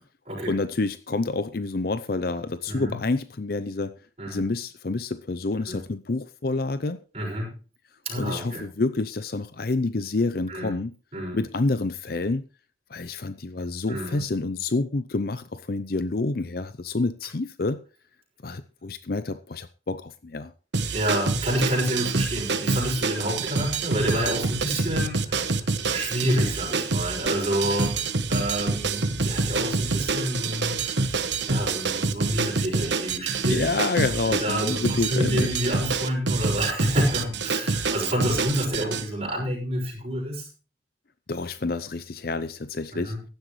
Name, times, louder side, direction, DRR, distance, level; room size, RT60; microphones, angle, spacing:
voice 1, 0.5-3.9 4.3-7.0 8.2-10.9 11.3-12.4 12.9-17.8 18.4-20.5 33.5-35.6 41.3-43.1, left 3 dB, 55° left, 0.6 m, -28 dB
voice 2, 2.7-3.0 4.2-4.4 5.7-5.8 7.1-7.5 8.0-8.6 10.5-10.8 11.1-11.4 13.9-14.2 20.9-33.7 34.2-40.5 42.9-43.2, equal, 35° right, 6.0 m, -29 dB
sound 1, 20.7-39.1, right 4 dB, 75° right, 1.1 m, -27 dB
15.5 x 11.5 x 3.2 m
head